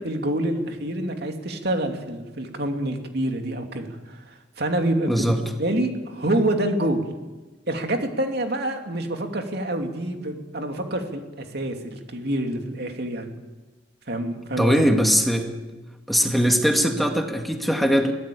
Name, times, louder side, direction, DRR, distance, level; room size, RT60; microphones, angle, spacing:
voice 1, 0.0-7.0 7.7-13.3 14.1-14.8, right 1 dB, 60° right, 4 dB, 2.8 m, -27 dB
voice 2, 14.6-15.5 16.1-18.1, equal, ahead, 3 dB, 2.2 m, -20 dB
23.0 x 16.5 x 8.6 m, 1.2 s
head